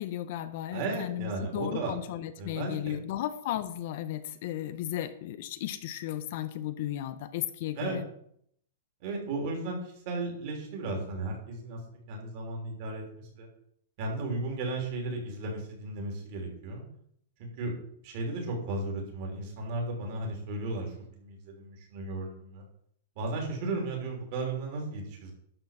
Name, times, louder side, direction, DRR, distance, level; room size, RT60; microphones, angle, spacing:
voice 1, 0.0-8.0, left 12 dB, 40° left, 12 dB, 0.5 m, -35 dB
voice 2, 0.7-1.9 2.4-2.9 7.7-8.0 9.0-11.8 12.1-13.5 14.0-16.8 17.4-17.7 18.0-22.6 23.1-25.3, right 2 dB, 35° right, 0 dB, 3.1 m, -35 dB
11.5 x 4.4 x 7.1 m, 0.68 s
supercardioid pair, 175°, 0 cm